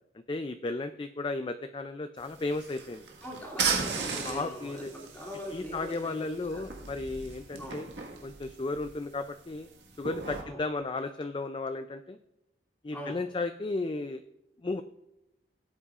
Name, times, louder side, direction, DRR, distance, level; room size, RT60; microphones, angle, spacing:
voice 1, 0.3-3.0 4.2-4.9 5.5-7.9 8.2-9.7 10.0-12.2 12.8-14.2 14.6-14.8, left 3 dB, 25° left, 9 dB, 0.4 m, -34 dB
sound 1, 2.2-10.4, right 5 dB, 70° right, 1.6 m, -37 dB
voice 2, 3.2-6.8 7.6-7.8 10.4-10.6 12.9-13.2, equal, 10° left, -2 dB, 2.7 m, -42 dB
18.5 x 8.2 x 2.5 m, 0.86 s
head